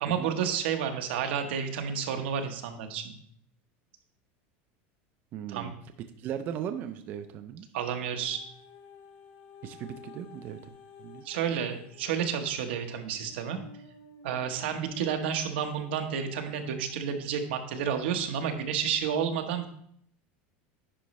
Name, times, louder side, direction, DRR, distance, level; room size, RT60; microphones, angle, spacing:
voice 1, 0.0-3.1 5.5-5.7 7.7-8.4 11.2-13.6 14.2-19.7, right 8 dB, 85° right, 5 dB, 1.0 m, -30 dB
voice 2, 5.3-5.7 6.2-7.7 9.6-10.6 11.0-11.2, right 9 dB, 35° right, 8 dB, 0.4 m, -37 dB
sound 1, 8.2-17.3 17.9-18.0, left 2 dB, 65° left, 1.7 m, -52 dB
9.9 x 5.1 x 3.1 m, 0.66 s
supercardioid pair, 165°, 6 cm